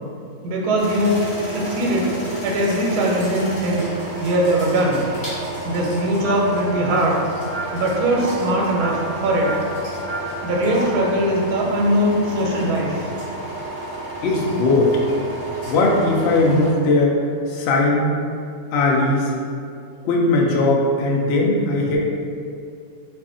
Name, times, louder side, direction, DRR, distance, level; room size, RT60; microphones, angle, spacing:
voice 1, 0.4-1.2 1.5-2.1 2.4-3.9 4.2-5.0 5.6-7.2 7.7-9.5 10.4-13.1, right 1 dB, 90° right, -2 dB, 1.1 m, -20 dB
sound 1, 0.8-16.7, right 1 dB, 25° left, 0.4 m, -32 dB
sound 2, 6.2-11.0, right 2 dB, 65° right, 0.4 m, -31 dB
voice 2, 14.2-15.0 15.7-17.2 17.5-18.1 18.7-19.3 20.0-22.0, left 2 dB, 75° left, -3 dB, 0.6 m, -18 dB
2.4 x 2.4 x 3.6 m, 2.4 s
omnidirectional pair, 1.6 m